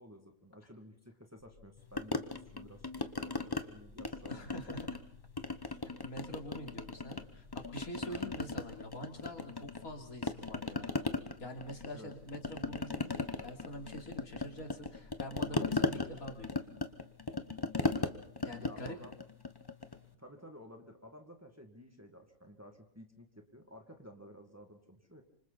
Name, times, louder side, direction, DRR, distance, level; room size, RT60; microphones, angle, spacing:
voice 1, 0.0-4.8 8.1-8.3 11.9-12.1 18.6-19.2 20.2-25.2, equal, 10° right, 4 dB, 2.1 m, -54 dB
sound 1, 1.4-16.5, left 2 dB, 55° left, 6.0 m, -59 dB
sound 2, 2.0-3.6 4.0-5.1 5.4-7.2 7.5-9.9 10.2-20.0, left 3 dB, 20° left, 0.9 m, -37 dB
voice 2, 4.1-5.0 5.6-11.0 11.4-16.6 18.4-19.0, equal, 85° left, 3 dB, 3.6 m, -46 dB
27.0 x 25.0 x 4.2 m, 0.64 s
omnidirectional pair, 1.5 m